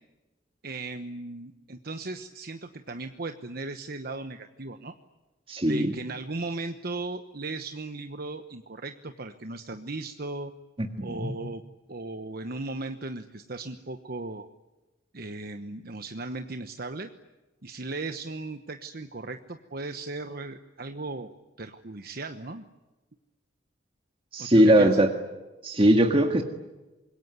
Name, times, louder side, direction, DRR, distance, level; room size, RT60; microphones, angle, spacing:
voice 1, 0.6-4.9 5.7-10.5 11.0-11.6 11.9-14.5 15.1-17.1 17.6-21.3 21.6-22.6 24.4-25.0, right 2 dB, 50° right, 8 dB, 1.1 m, -37 dB
voice 2, 5.5-6.0 10.8-11.3 24.3-25.1 25.6-26.4, right 1 dB, 30° right, 4 dB, 1.8 m, -20 dB
26.0 x 22.5 x 9.5 m, 1.1 s
head